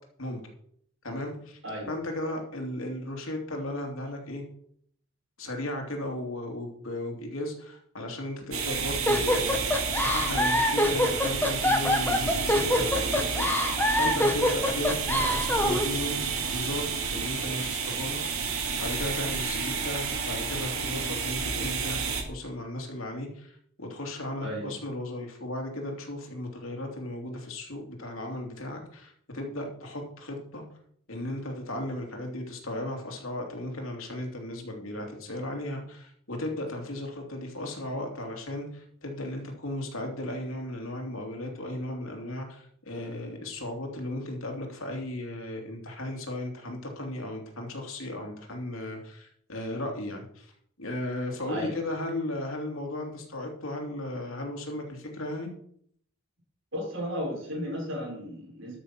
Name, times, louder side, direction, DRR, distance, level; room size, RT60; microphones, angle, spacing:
voice 1, 1.0-1.6 1.9-4.4 5.4-9.8 10.0-16.2 16.5-30.6 31.1-50.5 50.8-55.5, left 1 dB, 75° left, 2 dB, 3.0 m, -36 dB
voice 2, 1.6-2.0 24.4-24.7 51.5-51.8 56.7-58.8, equal, 60° right, -1 dB, 5.5 m, -34 dB
sound 1, 8.5-22.2, right 5 dB, 85° right, 2.2 m, -30 dB
sound 2, 9.1-15.9, left 1 dB, 10° left, 1.3 m, -25 dB
13.0 x 6.7 x 5.9 m, 0.63 s
head